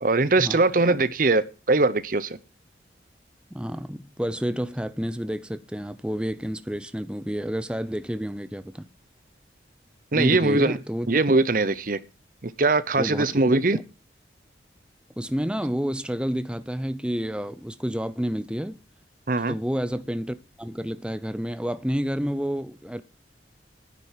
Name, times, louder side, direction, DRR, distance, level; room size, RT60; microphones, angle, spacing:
voice 1, 0.0-2.4 10.1-10.8 11.1-12.0 12.4-13.8 19.3-19.6, right 3 dB, 45° right, 0.8 m, -21 dB
voice 2, 3.5-8.9 10.1-11.1 13.0-13.4 13.7-13.8 15.2-18.8 19.5-23.0, equal, 5° right, 0.7 m, -29 dB
11.5 x 10.5 x 7.4 m
head